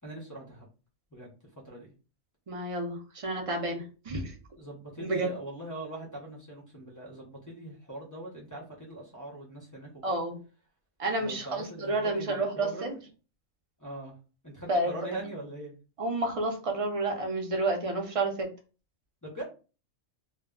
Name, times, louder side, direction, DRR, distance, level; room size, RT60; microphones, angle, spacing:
voice 1, 0.0-0.7 1.1-1.3 1.6-1.9 4.6-9.9 11.2-13.0 13.8-14.1 14.4-15.7 19.2-19.4, right 1 dB, 25° left, -5 dB, 0.5 m, -42 dB
voice 2, 2.5-4.3 5.0-5.3 10.0-10.4 11.0-12.9 14.7-15.1 16.0-18.5, right 2 dB, 45° right, 3 dB, 0.4 m, -30 dB
2.2 x 2.1 x 3.6 m, 0.34 s
omnidirectional pair, 1.4 m